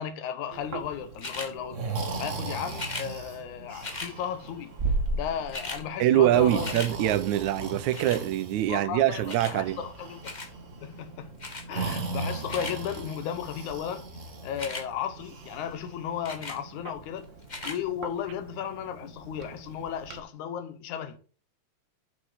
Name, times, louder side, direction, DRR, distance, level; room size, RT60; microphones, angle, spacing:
voice 1, 0.0-1.8 2.2-4.7 5.1-6.8 8.7-10.3 10.8-11.3 11.7-14.1 14.4-17.3 17.6-21.2, left 8 dB, 90° left, 2.5 m, -35 dB
Breathing, 0.5-20.2, right 3 dB, 40° right, 1.2 m, -37 dB
sound 1, 1.2-1.5 2.7-3.1 3.8-4.1 5.1-5.2 5.3-5.8 6.2-6.9 7.9-8.2 9.3-9.6 10.2-10.5 11.4-11.7 12.3-12.8 14.5-14.9 16.2-16.6 17.4-17.8 18.4-18.5, left 3 dB, 40° left, 0.6 m, -37 dB
voice 2, 6.0-9.8, right 13 dB, 85° right, 2.1 m, -24 dB
8.1 x 6.2 x 6.2 m
omnidirectional pair, 3.3 m